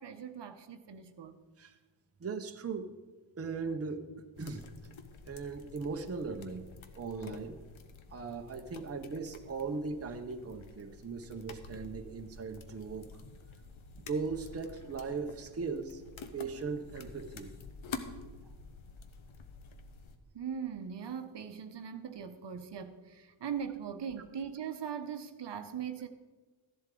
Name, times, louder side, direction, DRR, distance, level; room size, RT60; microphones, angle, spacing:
voice 1, 0.0-1.4 18.4-18.5 20.3-26.1, right 7 dB, 60° right, 8 dB, 0.9 m, -40 dB
voice 2, 2.2-2.9 3.4-4.7 5.3-6.6 7.0-7.6 8.1-13.1 14.1-16.0 16.3-17.5, right 4 dB, 30° right, 5 dB, 0.8 m, -38 dB
sound 1, 4.4-20.2, left 4 dB, 80° left, 1.0 m, -49 dB
14.0 x 11.0 x 3.8 m, 1.3 s
wide cardioid pair, 130°, 47 cm